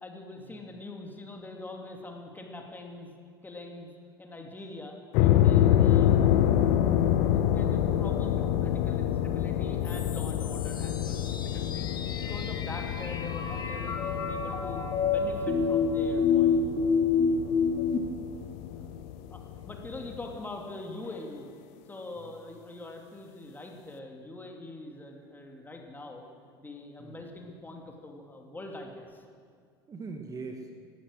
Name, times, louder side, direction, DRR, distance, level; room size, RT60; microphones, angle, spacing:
voice 1, 0.0-3.1 3.4-3.9 4.2-6.2 6.9-11.9 12.2-16.6 18.7-18.9 19.3-21.5 21.9-26.3 26.6-29.2, left 2 dB, 15° left, 2 dB, 2.6 m, -43 dB
sound 1, 5.1-20.4, left 11 dB, 55° left, 1.1 m, -27 dB
voice 2, 5.6-6.2 17.4-17.7 27.0-27.1 29.9-30.7, right 4 dB, 25° right, 4 dB, 1.5 m, -42 dB
sound 2, 9.9-18.0, left 5 dB, 35° left, 1.7 m, -29 dB
18.0 x 12.5 x 6.4 m, 2.1 s
figure-of-eight pair, 75°, 13 cm